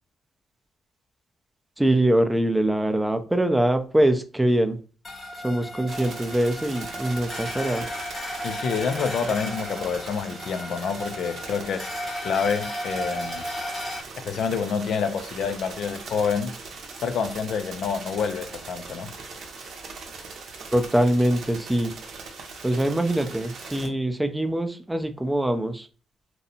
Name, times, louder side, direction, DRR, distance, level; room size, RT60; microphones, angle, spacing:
voice 1, 1.8-4.8 5.4-7.9 20.7-21.9 22.6-25.9, right 1 dB, 10° right, 0.4 m, -23 dB
sound 1, 5.0-14.0, left 1 dB, 25° left, 0.7 m, -34 dB
sound 2, 5.9-23.9, right 4 dB, 65° right, 0.6 m, -40 dB
voice 2, 8.4-11.9 12.2-13.5 14.2-16.5 17.0-19.2, left 6 dB, 65° left, 0.3 m, -28 dB
2.6 x 2.1 x 2.6 m
cardioid pair, 90°, 0 cm